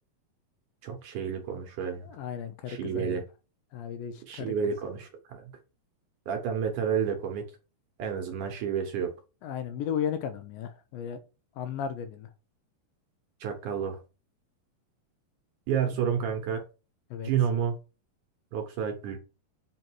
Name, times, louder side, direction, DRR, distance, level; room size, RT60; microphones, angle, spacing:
voice 1, 0.8-2.1 2.7-3.2 4.3-5.4 6.3-7.4 8.0-9.1 13.4-14.0 15.7-16.6 17.2-17.7 18.5-19.2, right 7 dB, 70° right, 2.1 m, -30 dB
voice 2, 2.0-3.2 3.7-4.5 9.4-11.2 11.6-12.3 17.1-17.3, left 8 dB, 75° left, 2.3 m, -35 dB
7.7 x 3.9 x 4.5 m
omnidirectional pair, 4.4 m